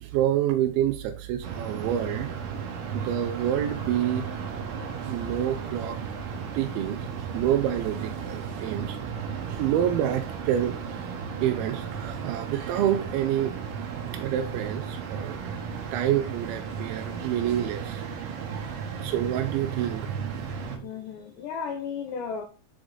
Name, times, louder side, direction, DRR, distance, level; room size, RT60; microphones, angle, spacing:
voice 1, 0.0-2.4 2.9-4.3 5.0-6.0 6.5-9.0 9.5-11.0 11.4-13.5 14.1-15.4 15.9-18.1 18.5-18.7 19.0-20.1, right 11 dB, 85° right, 2.5 m, -28 dB
sound 1, 1.4-20.8, right 6 dB, 70° right, 2.3 m, -34 dB
voice 2, 20.6-22.5, left 6 dB, 85° left, 1.8 m, -34 dB
6.1 x 5.1 x 3.8 m
omnidirectional pair, 4.3 m